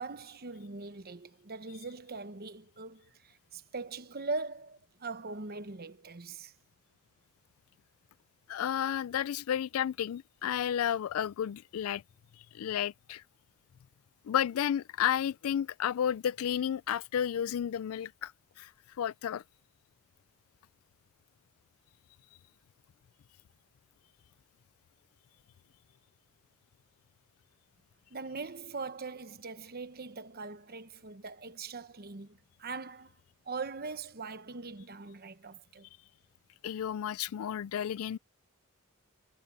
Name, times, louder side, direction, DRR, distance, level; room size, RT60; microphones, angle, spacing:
voice 1, 0.0-6.5 28.1-33.1 33.4-35.9, right 4 dB, 45° right, 1.1 m, -41 dB
voice 2, 8.5-12.0 12.5-13.2 14.3-18.3 18.6-18.7 19.0-19.4 36.6-38.2, left 9 dB, 80° left, 0.3 m, -32 dB
head